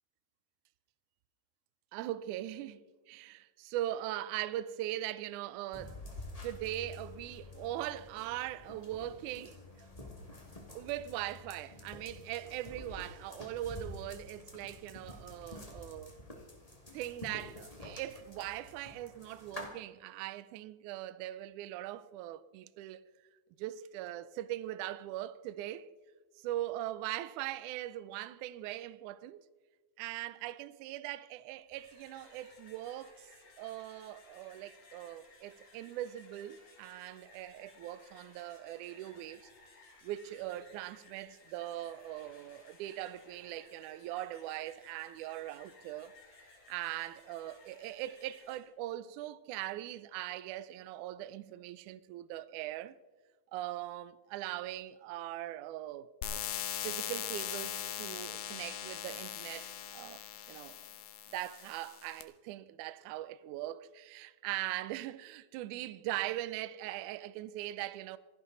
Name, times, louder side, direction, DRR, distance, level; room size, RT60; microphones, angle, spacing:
voice 1, 1.9-6.0 6.4-9.6 10.8-16.2 16.9-23.0 23.6-25.9 26.4-29.4 30.0-33.3 33.6-39.5 40.0-46.1 46.4-53.0 53.5-56.4 56.8-60.8 61.3-68.2, right 14 dB, 85° right, 1.7 m, -41 dB
sound 1, 5.7-19.7, left 2 dB, 15° left, 1.4 m, -49 dB
sound 2, 31.5-48.6, left 3 dB, 55° left, 4.4 m, -60 dB
sound 3, 56.2-62.2, left 10 dB, 80° left, 2.8 m, -40 dB
27.5 x 11.0 x 4.0 m
omnidirectional pair, 4.2 m